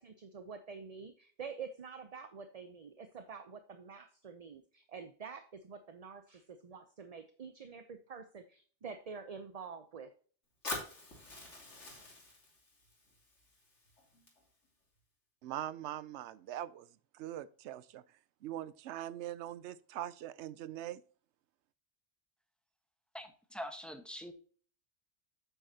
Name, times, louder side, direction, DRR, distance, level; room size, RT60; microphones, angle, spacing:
voice 1, 0.0-10.1, right 5 dB, 40° right, 0.6 m, -47 dB
Fire, 10.6-14.7, left 2 dB, 85° left, 3.0 m, -46 dB
voice 2, 15.4-16.9 17.1-18.0 18.4-21.0, right 12 dB, 75° right, 0.9 m, -42 dB
voice 3, 23.1-24.3, equal, ahead, 1.1 m, -44 dB
9.0 x 8.4 x 2.8 m
omnidirectional pair, 1.2 m